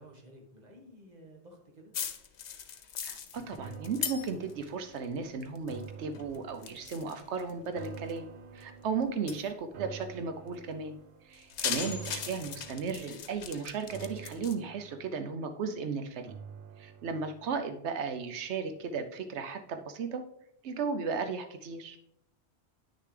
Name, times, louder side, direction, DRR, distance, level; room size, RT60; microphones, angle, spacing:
voice 1, 0.0-1.9 9.1-9.4, equal, 40° right, 1 dB, 1.6 m, -54 dB
sound 1, 1.9-4.7 5.0-5.8 6.1-8.1 8.6-8.7 9.3-9.5 11.3-14.5, left 8 dB, 80° left, 1.0 m, -39 dB
voice 2, 3.0-8.2 8.5-10.9 11.2-16.3 16.8-20.2 20.6-22.0, right 5 dB, 85° right, 8 dB, 1.0 m, -35 dB
sound 2, 3.6-18.9 19.3-19.4, right 6 dB, 60° right, 0.7 m, -49 dB
9.5 x 6.6 x 3.3 m, 0.75 s
omnidirectional pair, 1.1 m